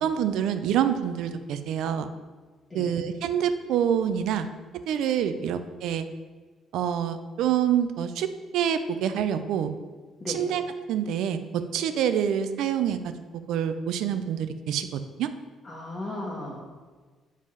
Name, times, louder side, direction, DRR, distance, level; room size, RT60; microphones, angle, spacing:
voice 1, 0.0-2.1 2.7-4.5 4.9-6.1 6.7-8.3 8.5-9.7 10.3-10.6 10.9-13.1 13.5-15.3, right 9 dB, 75° right, 10 dB, 0.5 m, -26 dB
voice 2, 15.6-16.7, left 1 dB, 20° left, -4 dB, 1.2 m, -35 dB
7.4 x 4.9 x 5.6 m, 1.4 s
cardioid pair, 165°, 0 cm